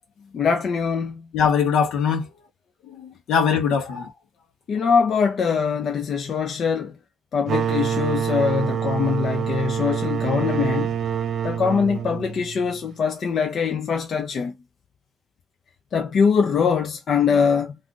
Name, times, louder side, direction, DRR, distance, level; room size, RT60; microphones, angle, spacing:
voice 1, 0.3-1.2 4.7-6.9 7.3-10.9 11.4-14.5 15.9-17.8, left 6 dB, 55° left, 0.5 m, -22 dB
voice 2, 1.3-2.3 3.0-4.1, left 6 dB, 80° left, 0.9 m, -21 dB
sound 1, 7.5-12.9, right 8 dB, 60° right, 0.4 m, -26 dB
2.5 x 2.5 x 3.6 m
cardioid pair, 85°, 0 cm